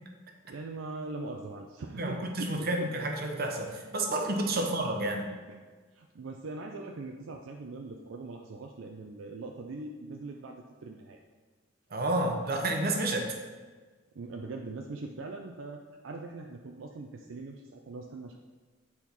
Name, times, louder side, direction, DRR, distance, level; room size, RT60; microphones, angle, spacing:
voice 1, 0.5-2.9 4.5-4.7 5.5-5.6 5.9-11.2 14.1-18.4, right 3 dB, 75° right, 2 dB, 0.5 m, -41 dB
voice 2, 2.0-5.3 11.9-13.4, right 1 dB, 50° right, 3 dB, 0.9 m, -30 dB
8.2 x 4.4 x 4.0 m, 1.4 s
head